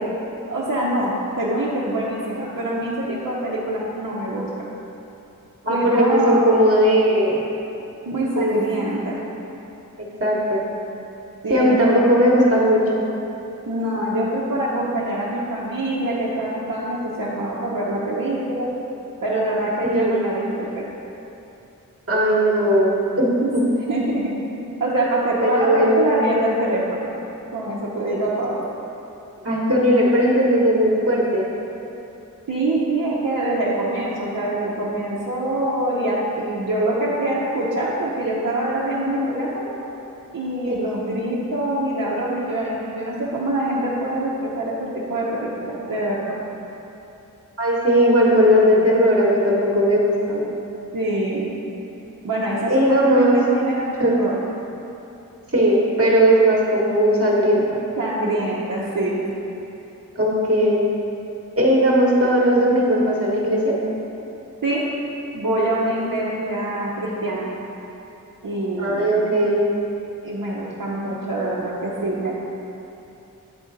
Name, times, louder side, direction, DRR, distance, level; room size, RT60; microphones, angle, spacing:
voice 1, 0.5-4.7 5.7-6.4 8.1-9.2 11.4-12.0 13.7-18.7 19.2-20.9 23.4-23.5 23.9-24.3 24.8-27.1 27.5-28.6 32.5-39.7 40.3-46.4 50.9-51.5 52.2-54.4 58.0-59.2 64.6-64.8 65.3-67.5 68.4-69.0 70.2-72.3, right 1 dB, 70° right, -8 dB, 0.9 m, -24 dB
voice 2, 5.6-7.4 8.3-8.6 10.0-10.6 11.5-13.0 19.8-20.2 22.1-23.3 25.4-26.1 29.4-31.4 40.6-40.8 47.6-50.4 52.7-53.4 54.0-54.1 55.5-57.8 60.1-60.8 61.6-63.7 68.8-69.6, equal, 45° right, -5 dB, 1.4 m, -18 dB
8.6 x 3.8 x 4.0 m, 2.9 s
cardioid pair, 45°, 33 cm